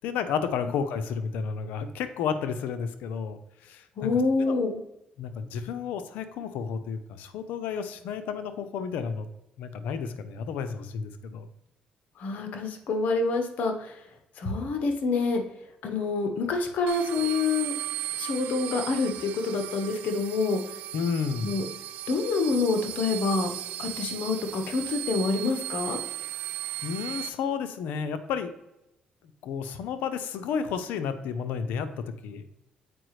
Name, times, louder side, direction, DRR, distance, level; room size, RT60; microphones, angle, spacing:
voice 1, 0.0-4.1 4.4-4.6 5.2-9.3 9.6-11.5 20.9-21.5 26.8-28.5 29.4-31.9 32.2-32.5, left 6 dB, 85° left, 10 dB, 0.6 m, -31 dB
voice 2, 4.0-4.8 12.2-13.9 14.4-15.4 15.8-17.7 18.2-20.6 21.4-21.7 22.1-23.5 23.8-26.0, left 3 dB, 70° left, 5 dB, 1.2 m, -27 dB
sound 1, 16.9-27.3, right 14 dB, 90° right, 0.3 m, -36 dB
7.7 x 4.9 x 3.2 m, 0.89 s
cardioid pair, 75°, 3 cm